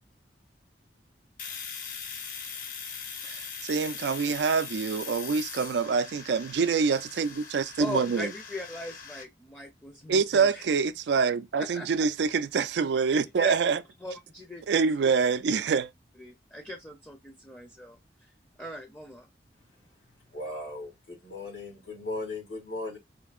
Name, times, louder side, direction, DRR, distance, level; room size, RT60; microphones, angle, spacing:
Domestic sounds home sounds, 1.4-9.2, left 6 dB, 50° left, 0.8 m, -41 dB
voice 1, 3.2-8.3 10.1-13.8 14.7-15.9, right 5 dB, 75° right, 0.3 m, -26 dB
voice 2, 7.8-10.7 11.5-12.1 13.4-13.6 14.0-15.1 15.7-15.8 16.1-19.3, left 1 dB, 10° left, 0.5 m, -40 dB
voice 3, 20.3-23.0, left 2 dB, 90° left, 2.4 m, -37 dB
4.3 x 2.6 x 2.4 m
head